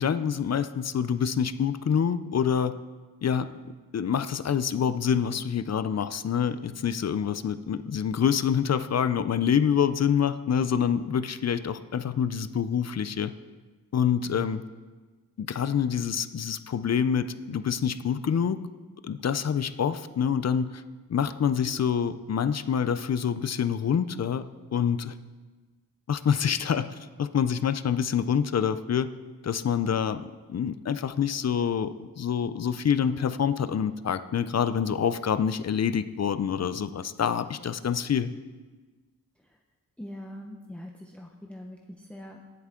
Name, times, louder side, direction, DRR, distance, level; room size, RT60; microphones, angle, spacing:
voice 1, 0.0-2.8 3.2-3.5 3.9-13.3 13.9-14.6 15.4-18.6 19.0-20.8 21.1-24.4 24.7-25.1 26.1-29.1 29.4-30.2 30.5-38.3, left 7 dB, 50° left, 13 dB, 0.5 m, -26 dB
voice 2, 40.0-42.4, left 1 dB, 5° left, 2 dB, 0.6 m, -42 dB
18.5 x 7.8 x 3.7 m, 1.3 s
wide cardioid pair, 165°, 35 cm